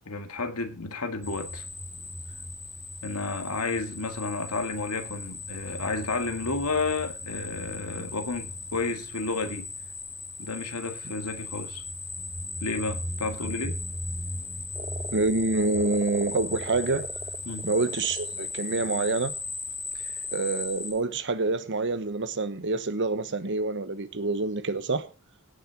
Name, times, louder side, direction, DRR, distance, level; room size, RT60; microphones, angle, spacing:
voice 1, 0.1-1.6 3.0-9.7 10.4-11.8 12.6-13.8 17.4-17.7 19.9-20.2, left 3 dB, 90° left, 2.0 m, -31 dB
sound 1, 1.2-20.9, left 2 dB, 10° left, 3.6 m, -37 dB
sound 2, 14.7-18.8 19.9-20.3, right 3 dB, 25° right, 1.0 m, -41 dB
voice 2, 15.1-17.1 17.6-19.3 20.3-25.1, right 3 dB, 55° right, 1.0 m, -27 dB
17.5 x 6.4 x 4.6 m
head